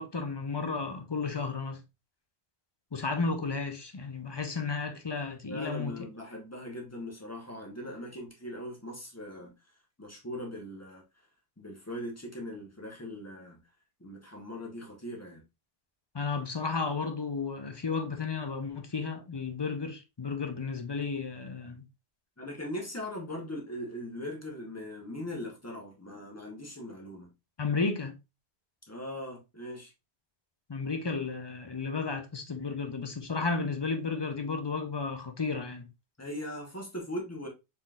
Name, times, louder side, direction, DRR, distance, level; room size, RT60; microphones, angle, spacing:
voice 1, 0.0-1.8 2.9-5.9 16.1-21.8 27.6-28.1 30.7-35.9, left 4 dB, 30° left, 0.5 m, -33 dB
voice 2, 5.5-9.5 10.0-11.0 11.6-13.6 14.0-15.4 22.4-27.3 28.9-29.9 36.2-37.5, left 1 dB, 15° left, 1.1 m, -40 dB
4.1 x 3.7 x 2.4 m
omnidirectional pair, 1.1 m